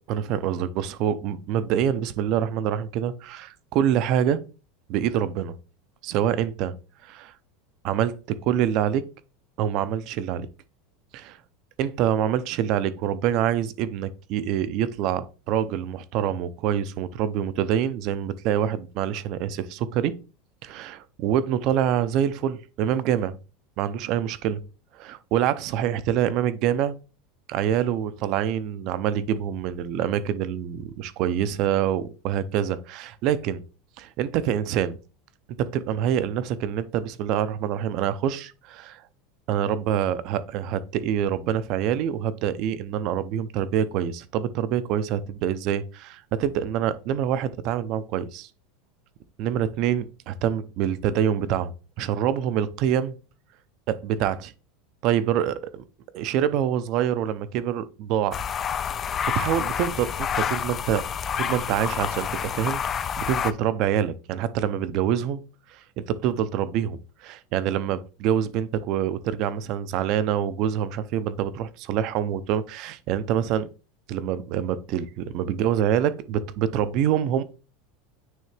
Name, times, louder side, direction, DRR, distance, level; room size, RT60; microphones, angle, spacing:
voice 1, 0.1-4.4 4.9-5.5 6.0-6.8 7.0-7.3 7.8-9.0 9.6-10.5 11.1-11.4 11.8-20.1 20.6-23.4 23.8-24.6 24.9-27.0 27.5-33.6 34.0-35.0 35.6-39.0 39.5-48.5 49.4-53.1 53.9-54.5 55.0-55.8 56.1-58.4 59.3-61.1 61.3-62.8 63.2-65.4 65.7-73.7 74.1-77.4, right 10 dB, 45° right, 0.6 m, -26 dB
sound 1, 58.3-63.5, left 8 dB, 20° left, 0.3 m, -28 dB
9.2 x 3.3 x 3.3 m
supercardioid pair, 165°, 0 cm